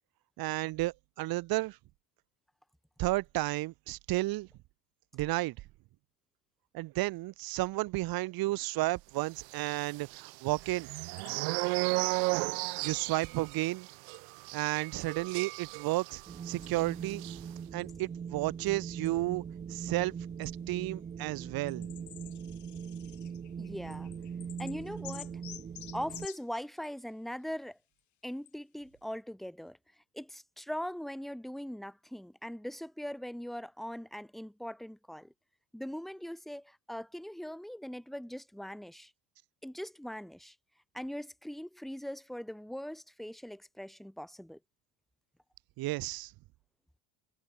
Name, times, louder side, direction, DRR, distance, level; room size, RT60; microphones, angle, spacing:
voice 1, 0.4-1.8 3.0-4.5 5.1-5.6 6.7-10.9 12.8-13.9 14.5-17.2 17.7-19.4 19.7-21.9 45.8-46.3, right 19 dB, 55° right, 1.1 m, -32 dB
sound 1, 9.6-16.3 16.6-16.8 17.1-17.4, right 40 dB or more, 80° right, 1.3 m, -34 dB
sound 2, 11.0-12.3 14.1-14.2 15.0-15.5 16.6-16.7 17.3-17.4 17.8-18.1 19.0-19.1 20.4-20.5 21.1-21.2 21.7-27.0 28.0-28.1 28.5-28.6, left 13 dB, 40° left, 1.3 m, -51 dB
Wind, 16.3-26.3, right 7 dB, 15° right, 0.5 m, -41 dB
voice 2, 23.6-24.1 24.6-25.3 25.9-27.8 28.2-29.8 30.1-35.3 35.7-39.1 39.6-40.5 40.9-44.6, equal, ahead, 1.0 m, -41 dB
cardioid pair, 135°, 44 cm